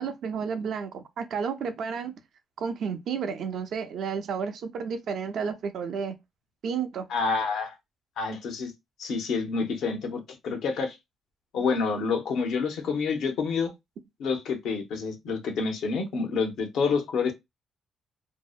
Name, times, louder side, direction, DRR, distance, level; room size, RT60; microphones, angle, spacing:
voice 1, 0.0-2.1 2.6-6.1 6.6-7.1, right 6 dB, 70° right, 0.5 m, -31 dB
voice 2, 7.1-7.7 8.2-8.7 9.0-11.0 11.5-13.7 14.2-17.3, left 5 dB, 80° left, 0.6 m, -28 dB
2.6 x 2.0 x 2.3 m
cardioid pair, 90°, 0 cm